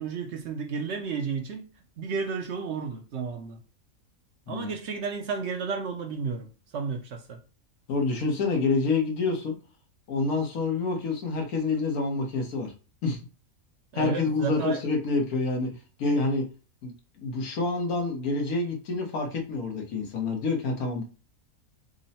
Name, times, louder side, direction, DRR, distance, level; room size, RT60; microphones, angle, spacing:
voice 1, 0.0-1.7 2.0-3.6 4.5-7.4 13.9-14.8, right 5 dB, 60° right, 0.8 m, -32 dB
voice 2, 7.9-9.5 10.1-12.7 13.0-13.3 13.9-16.5 16.8-21.0, left 3 dB, 85° left, 1.5 m, -27 dB
3.7 x 2.1 x 4.1 m
omnidirectional pair, 1.5 m